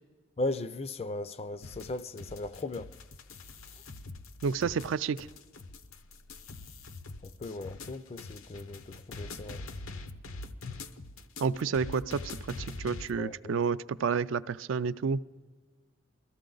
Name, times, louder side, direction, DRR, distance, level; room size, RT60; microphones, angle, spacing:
voice 1, 0.4-2.9 7.2-9.6 13.2-13.6, left 2 dB, 30° left, 0.4 m, -37 dB
sound 1, 1.6-13.1, left 3 dB, 90° left, 0.7 m, -44 dB
voice 2, 4.4-5.3 11.4-12.2 12.6-15.2, right 6 dB, 70° right, 0.4 m, -30 dB
22.5 x 14.0 x 3.9 m
head